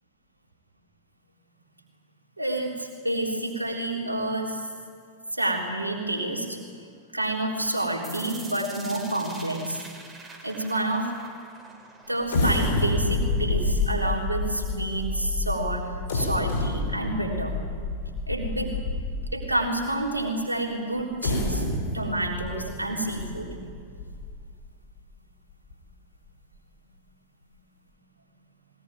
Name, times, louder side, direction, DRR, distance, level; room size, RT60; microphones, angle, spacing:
voice 1, 2.4-4.6 5.3-6.6 7.1-9.8 10.4-11.1 12.1-17.6 18.3-18.7 19.3-21.7 21.9-23.6, right 1 dB, 85° right, -1 dB, 3.7 m, -29 dB
sound 1, 8.0-14.0, right 3 dB, 15° right, 4.0 m, -45 dB
sound 2, 12.3-19.4 20.0-20.1 21.0-24.5 25.0-25.1 25.5-25.7, left 2 dB, 60° left, 5.9 m, -28 dB
21.5 x 19.5 x 9.0 m, 2.3 s
figure-of-eight pair, 90°, 0 cm